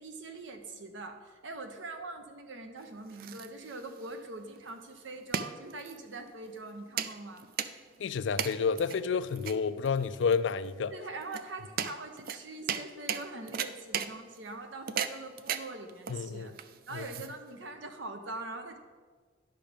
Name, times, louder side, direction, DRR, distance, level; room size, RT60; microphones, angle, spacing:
voice 1, 0.0-7.5 10.9-16.5 16.9-18.8, right 2 dB, 80° right, 1.0 m, -43 dB
sound 1, 2.8-17.7, right 8 dB, 50° right, 0.4 m, -38 dB
voice 2, 8.0-10.9 16.1-16.5 16.9-17.1, left 5 dB, 70° left, 0.4 m, -30 dB
10.0 x 5.9 x 5.1 m
head